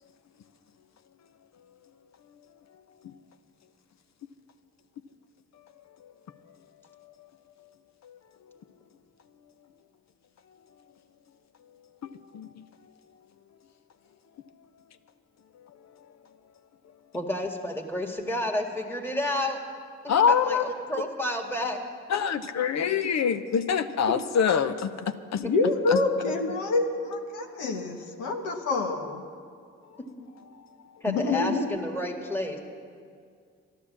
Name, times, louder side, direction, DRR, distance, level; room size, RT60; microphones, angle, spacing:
voice 1, 12.3-12.6 20.1-20.6 22.1-25.4 25.9-26.0, left 7 dB, 60° left, 10 dB, 0.8 m, -25 dB
voice 2, 17.1-19.6 20.0-21.8 24.1-24.2 25.4-25.5 26.3-26.4 31.0-32.6, left 1 dB, 5° left, 1 dB, 1.8 m, -30 dB
voice 3, 25.4-29.2 31.1-31.7, left 3 dB, 90° left, 3 dB, 1.1 m, -27 dB
12.0 x 11.5 x 7.4 m, 2.2 s
supercardioid pair, 55°, 30 cm